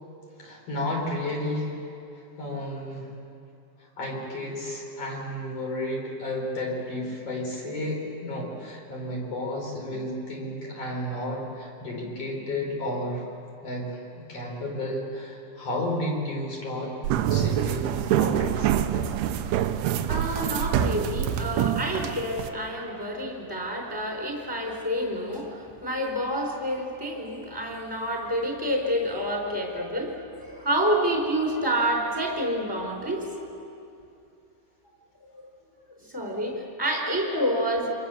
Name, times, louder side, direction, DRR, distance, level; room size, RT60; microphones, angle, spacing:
voice 1, 0.4-1.7 2.4-3.1 3.8-13.3 13.6-14.0 14.3-17.0 17.3-18.7, left 1 dB, 35° left, -1 dB, 5.3 m, -32 dB
sound 1, 17.0-22.5, right 10 dB, 85° right, 2.8 m, -25 dB
voice 2, 20.0-33.3 35.3-35.5 36.1-37.9, equal, 5° right, 0 dB, 3.6 m, -28 dB
28.0 x 25.0 x 7.1 m, 2.7 s
omnidirectional pair, 4.7 m